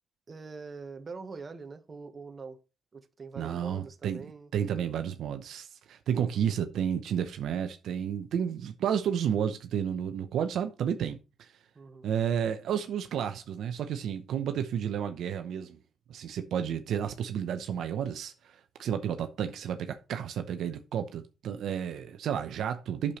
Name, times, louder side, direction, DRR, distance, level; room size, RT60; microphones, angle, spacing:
voice 1, 0.3-2.6 2.9-4.5 6.2-6.4 11.7-12.1, right 4 dB, 35° right, 1.2 m, -44 dB
voice 2, 3.4-4.2 4.5-11.5 12.0-15.8 16.1-23.2, right 8 dB, 75° right, 0.8 m, -31 dB
8.4 x 6.7 x 3.1 m
cardioid pair, 90°, 0 cm